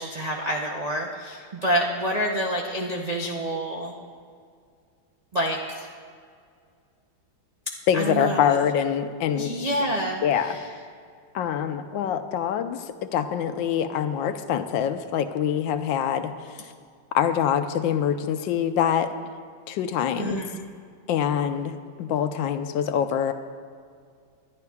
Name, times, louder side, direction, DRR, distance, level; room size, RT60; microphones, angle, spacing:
voice 1, 0.0-3.9 5.3-5.9 7.9-8.6 9.3-10.7 20.2-20.6, right 1 dB, 85° right, -1 dB, 0.3 m, -28 dB
voice 2, 7.9-9.5 10.2-10.6 11.3-16.3 17.1-19.1 19.7-20.4 21.1-23.3, left 9 dB, 85° left, 9 dB, 1.3 m, -25 dB
20.0 x 12.0 x 2.4 m, 2.2 s
omnidirectional pair, 2.0 m